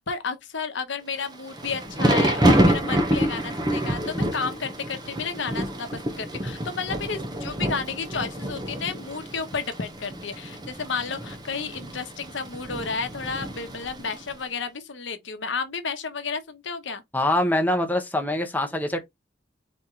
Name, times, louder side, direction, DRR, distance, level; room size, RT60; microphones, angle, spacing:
voice 1, 0.0-17.0, left 5 dB, 85° left, 0.9 m, -32 dB
Thunder / Rain, 1.3-14.3, right 1 dB, 20° right, 0.7 m, -27 dB
voice 2, 17.1-19.0, left 1 dB, 10° left, 0.9 m, -24 dB
4.2 x 3.2 x 3.6 m
head